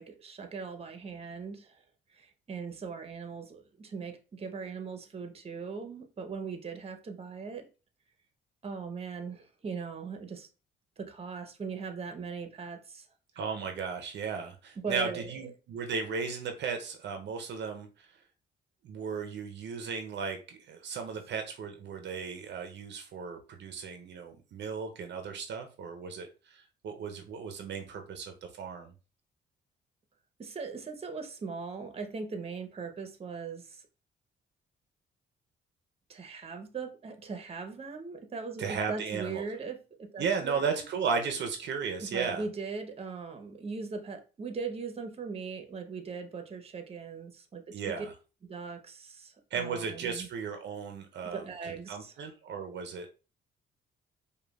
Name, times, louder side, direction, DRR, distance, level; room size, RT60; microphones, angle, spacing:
voice 1, 0.0-1.8 2.1-7.7 8.6-10.5 11.0-13.1 14.8-15.5 30.4-33.8 36.1-40.7 42.0-48.1 48.5-50.3 51.2-52.1, right 5 dB, 30° right, 0.7 m, -39 dB
voice 2, 13.4-18.1 18.8-28.9 38.6-39.4 40.2-42.4 47.7-48.1 49.5-53.1, right 6 dB, 65° right, 0.6 m, -35 dB
5.0 x 2.2 x 2.3 m
cardioid pair, 90°, 20 cm